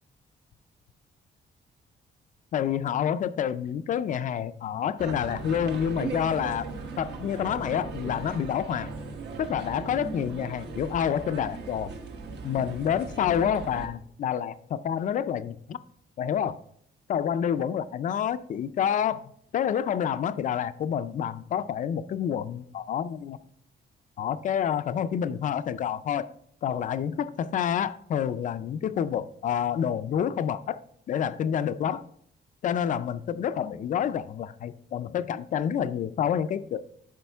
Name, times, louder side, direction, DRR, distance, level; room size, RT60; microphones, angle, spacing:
voice 1, 2.5-6.7 7.0-8.9 9.4-11.9 12.4-15.8 16.2-16.6 17.1-23.4 24.2-26.3 26.6-30.8 31.1-32.0 32.6-36.8, left 8 dB, 45° left, 0.4 m, -28 dB
sound 1, 5.0-13.9, right 4 dB, 70° right, 1.2 m, -38 dB
12.0 x 5.1 x 3.4 m
wide cardioid pair, 175°, 18 cm